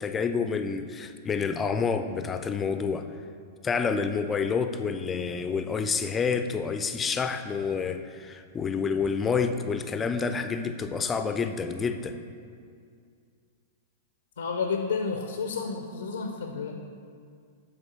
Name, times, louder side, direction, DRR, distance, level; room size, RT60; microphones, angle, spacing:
voice 1, 0.0-3.1 3.6-12.2, left 5 dB, 20° left, 8 dB, 0.3 m, -28 dB
voice 2, 14.4-16.8, left 5 dB, 85° left, 4 dB, 0.4 m, -31 dB
7.1 x 3.4 x 4.2 m, 2.3 s
hypercardioid pair, 115°, 0 cm